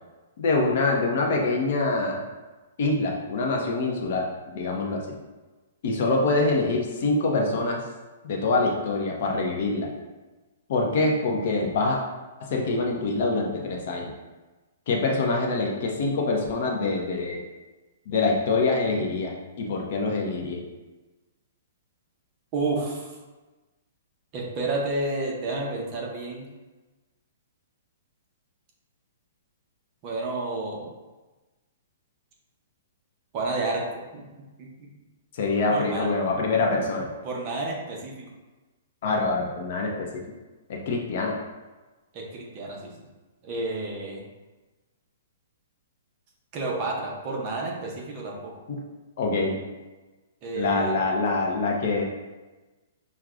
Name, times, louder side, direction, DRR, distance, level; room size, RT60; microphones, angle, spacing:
voice 1, 0.4-2.2 2.8-5.2 5.8-7.8 8.2-9.9 10.7-12.0 12.4-14.1 14.9-17.4 18.1-20.6 35.3-37.1 39.0-40.2 40.7-41.4 48.7-48.8 49.2-49.6 50.5-52.0, left 3 dB, 50° left, 0 dB, 0.7 m, -25 dB
voice 2, 22.5-23.1 24.3-26.5 30.0-30.9 33.3-34.2 34.6-34.9 35.7-36.1 37.2-38.3 42.1-42.9 43.4-44.3 46.5-48.5 50.4-51.0, right 2 dB, 30° right, -1 dB, 0.7 m, -30 dB
6.0 x 2.2 x 2.5 m, 1.2 s
hypercardioid pair, 165°, 0 cm